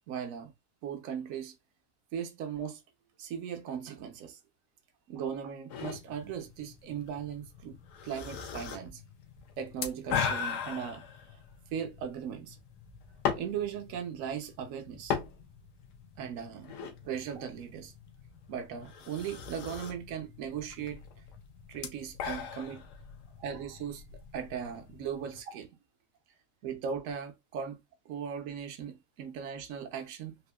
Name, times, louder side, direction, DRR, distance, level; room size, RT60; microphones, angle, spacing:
voice 1, 0.1-0.5 0.8-1.6 2.1-2.8 3.2-4.4 5.1-9.0 9.6-11.1 11.7-12.6 13.4-15.2 16.2-16.7 17.0-17.9 18.5-21.0 21.7-22.8 23.4-24.0 24.3-25.7 26.6-27.8 28.1-30.4, right 8 dB, 65° right, 1.0 m, -38 dB
sound 1, 5.7-25.4, left 7 dB, 85° left, 1.2 m, -40 dB
3.6 x 2.5 x 2.3 m
omnidirectional pair, 1.7 m